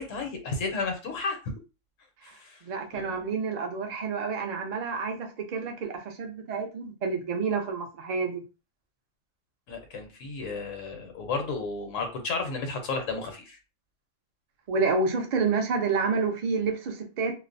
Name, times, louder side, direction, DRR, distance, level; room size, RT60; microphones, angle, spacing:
voice 1, 0.0-1.4 2.2-2.6 2.9-3.3 9.7-13.6, left 4 dB, 75° left, 4 dB, 1.0 m, -33 dB
voice 2, 2.6-8.4 14.7-17.3, right 4 dB, 60° right, 3 dB, 0.4 m, -29 dB
2.4 x 2.0 x 2.5 m, 0.31 s
omnidirectional pair, 1.4 m